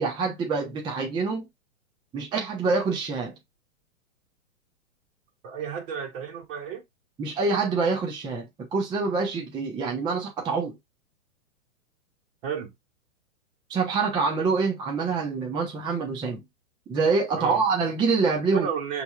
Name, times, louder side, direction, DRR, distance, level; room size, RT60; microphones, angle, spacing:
voice 1, 0.0-1.4 2.1-3.3 7.2-10.8 13.7-16.4 16.9-18.7, right 4 dB, 10° right, 0.7 m, -26 dB
voice 2, 5.4-6.8 12.4-12.7 17.4-17.6 18.5-19.0, right 7 dB, 40° right, 2.3 m, -32 dB
6.8 x 3.3 x 2.3 m
hypercardioid pair, 145°, 41 cm